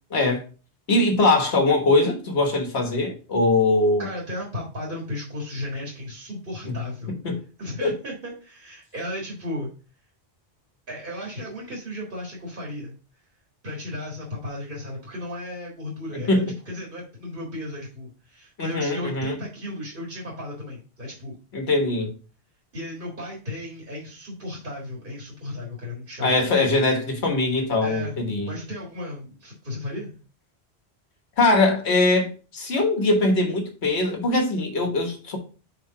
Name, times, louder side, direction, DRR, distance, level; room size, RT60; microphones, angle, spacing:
voice 1, 0.1-0.4 0.9-4.1 6.7-6.8 7.2-7.4 7.8-7.9 16.3-16.5 18.6-19.4 21.5-22.1 26.2-28.5 31.4-35.4, left 2 dB, 85° left, 1.7 m, -21 dB
voice 2, 4.0-7.1 7.6-9.7 10.9-12.9 13.6-21.4 22.7-26.3 27.8-30.2, left 1 dB, 55° right, 1.9 m, -35 dB
4.9 x 4.7 x 4.7 m
omnidirectional pair, 1.1 m